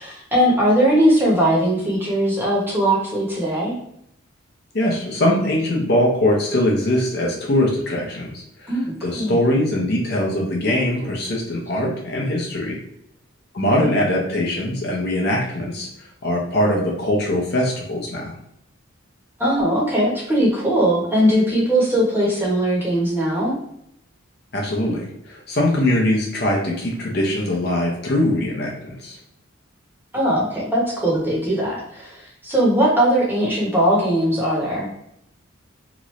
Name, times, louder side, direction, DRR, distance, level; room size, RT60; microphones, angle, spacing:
voice 1, 0.0-3.7 8.7-8.8 9.1-9.4 13.7-13.9 19.4-23.5 30.1-34.9, right 1 dB, 10° right, -5 dB, 0.9 m, -19 dB
voice 2, 4.7-12.8 13.5-18.4 24.5-29.2, left 1 dB, 50° left, -1 dB, 0.7 m, -22 dB
3.0 x 2.5 x 3.1 m, 0.74 s
head